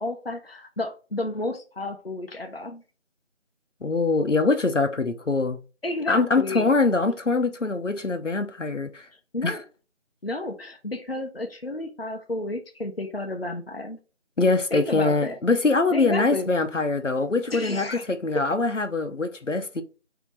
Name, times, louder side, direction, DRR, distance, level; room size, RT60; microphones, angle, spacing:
voice 1, 0.0-2.8 5.8-6.7 9.3-9.6 10.2-14.0 14.7-15.4 15.9-16.5 17.5-18.0 18.3-18.5, left 2 dB, 55° left, 0.7 m, -31 dB
voice 2, 3.8-5.6 6.1-9.1 9.4-9.6 14.4-19.8, left 3 dB, 80° left, 0.9 m, -23 dB
4.6 x 2.9 x 3.9 m
figure-of-eight pair, 180°, 36 cm